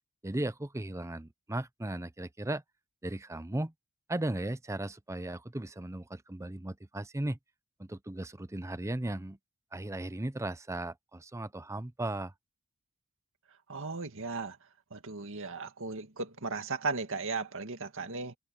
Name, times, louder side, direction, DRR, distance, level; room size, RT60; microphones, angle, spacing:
voice 1, 0.2-2.6 3.0-3.7 4.1-7.4 7.8-9.4 9.7-12.3, right 1 dB, 15° right, 0.7 m, -36 dB
voice 2, 13.7-14.6 14.9-18.4, right 4 dB, 65° right, 2.1 m, -36 dB
head